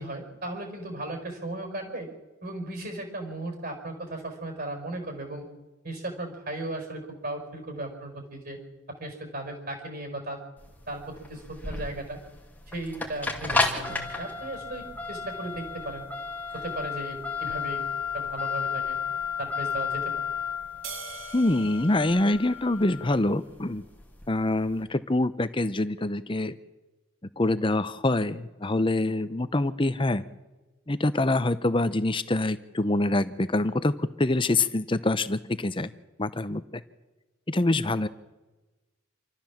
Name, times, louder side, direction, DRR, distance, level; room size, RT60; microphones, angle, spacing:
voice 1, 0.0-2.1 2.4-5.5 5.8-8.6 8.9-10.4 10.9-12.2 12.7-16.1 16.5-17.8 18.1-19.0 19.4-20.1, right 2 dB, 45° right, 4 dB, 4.9 m, -36 dB
sound 1, 10.6-24.7, left 5 dB, 10° left, 2.3 m, -33 dB
sound 2, 20.8-23.5, right 6 dB, 75° right, 1.9 m, -44 dB
voice 2, 21.3-23.8 24.3-26.6 27.4-30.2 30.9-35.9 36.2-36.8 37.5-38.1, left 2 dB, 25° left, 13 dB, 0.7 m, -25 dB
27.5 x 13.5 x 7.3 m, 1.1 s
head